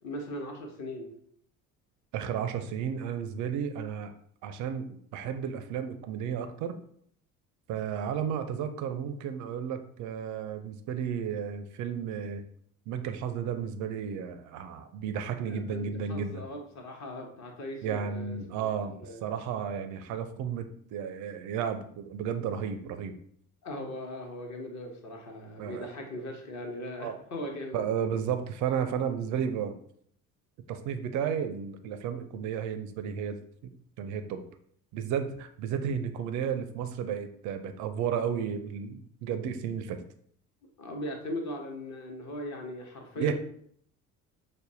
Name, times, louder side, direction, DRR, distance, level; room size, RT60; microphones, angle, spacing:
voice 1, 0.0-1.1 15.5-19.2 23.6-27.9 40.8-43.3, left 1 dB, 35° left, 2 dB, 0.8 m, -39 dB
voice 2, 2.1-4.1 4.4-6.8 7.7-12.4 12.9-16.4 17.8-23.1 25.6-25.9 27.0-27.2 27.7-29.8 30.7-33.4 34.0-34.4 34.9-40.0 43.2-43.3, right 8 dB, 40° right, 9 dB, 0.4 m, -33 dB
5.0 x 2.1 x 2.6 m, 0.64 s
figure-of-eight pair, 55°, 46 cm